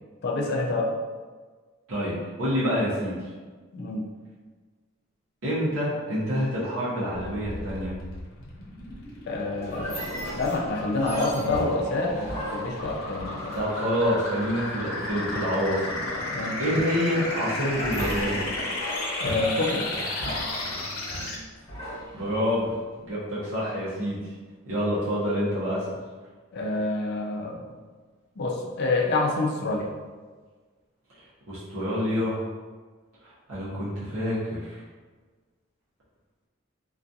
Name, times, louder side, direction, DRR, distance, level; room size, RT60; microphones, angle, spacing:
voice 1, 0.2-0.9 3.7-4.0 9.3-10.0 10.4-13.6 16.3-16.6 19.2-19.9 26.5-27.6 28.4-29.9, left 2 dB, 50° left, 0 dB, 0.4 m, -27 dB
voice 2, 1.9-3.3 5.4-8.0 13.5-16.0 16.6-18.4 22.1-22.7 23.0-24.3 24.7-26.0 31.5-32.4 33.2-34.8, equal, 75° right, -8 dB, 0.7 m, -27 dB
sound 1, 7.1-21.3, left 2 dB, 90° left, 0.6 m, -34 dB
sound 2, 9.6-13.9 17.7-22.8, equal, 30° left, 1.0 m, -36 dB
2.3 x 2.3 x 2.6 m, 1.4 s
head